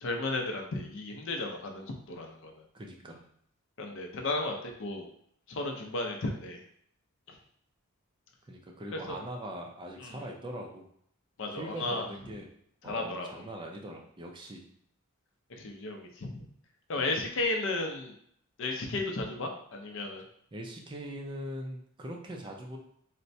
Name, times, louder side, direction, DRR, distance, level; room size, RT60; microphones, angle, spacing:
voice 1, 0.0-2.5 3.8-5.1 5.5-6.6 7.3-7.4 8.9-9.2 10.0-10.2 11.4-12.0 12.8-13.4 15.5-16.4 16.9-18.1 18.6-20.2, left 2 dB, 60° left, 3 dB, 0.5 m, -34 dB
voice 2, 2.7-3.2 8.5-10.9 11.5-12.5 12.8-14.6 17.0-17.1 20.5-22.8, right 1 dB, 20° right, 1 dB, 0.4 m, -41 dB
4.1 x 2.1 x 2.6 m, 0.68 s
head